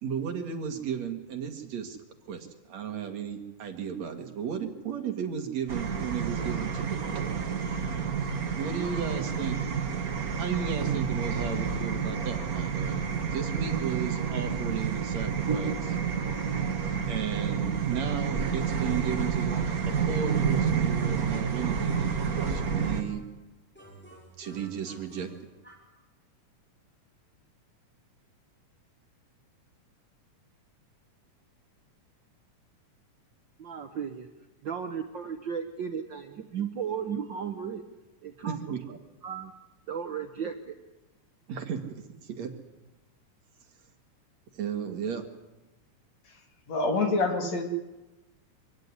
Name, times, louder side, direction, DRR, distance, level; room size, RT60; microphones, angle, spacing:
voice 1, 0.0-2.0 2.3-7.7 8.5-9.6 10.3-13.0 13.3-16.0 17.1-19.5 20.0-23.2 24.4-25.3 38.4-39.0 41.5-42.5 44.5-45.2, right 7 dB, 60° right, 6 dB, 3.0 m, -34 dB
sound 1, 5.7-23.0, right 6 dB, 40° right, 1.4 m, -29 dB
sound 2, 22.3-23.4 23.7-26.0, right 2 dB, 5° left, 4.3 m, -51 dB
voice 2, 33.6-34.3 34.6-37.8 38.2-38.6 39.2-39.5 39.9-40.8, right 7 dB, 75° right, 6 dB, 1.0 m, -35 dB
voice 3, 46.7-47.6, left 3 dB, 55° left, 4 dB, 3.7 m, -26 dB
25.5 x 16.0 x 9.8 m, 1.1 s
omnidirectional pair, 3.8 m